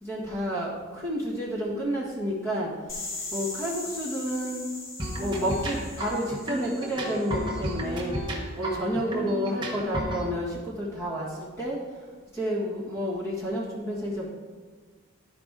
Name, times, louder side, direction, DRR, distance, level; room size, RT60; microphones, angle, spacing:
voice 1, 0.0-2.7 3.3-4.6 5.2-8.2 8.6-11.8 12.3-14.3, equal, 10° left, -7 dB, 1.6 m, -30 dB
sound 1, 2.9-7.7, left 2 dB, 60° left, 1.6 m, -39 dB
sound 2, 5.0-10.3, equal, 20° right, 1.2 m, -33 dB
12.0 x 5.0 x 3.7 m, 1.5 s
head